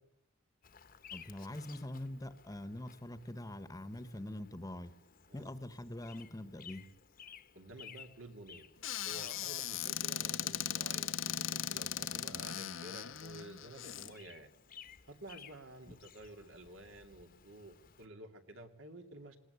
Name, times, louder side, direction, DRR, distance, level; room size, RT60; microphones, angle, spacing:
Bird vocalization bird call bird song, 0.6-18.1, left 7 dB, 45° left, 1.0 m, -58 dB
voice 1, 1.1-4.9 5.3-6.9 12.1-12.4, left 1 dB, 15° left, 12 dB, 1.1 m, -44 dB
voice 2, 7.5-8.7 9.0-14.5 15.1-19.4, right 2 dB, 75° right, 6 dB, 2.7 m, -52 dB
Squeak / Cupboard open or close, 8.8-14.1, left 11 dB, 75° left, 0.9 m, -38 dB
20.0 x 19.0 x 9.6 m, 0.84 s
head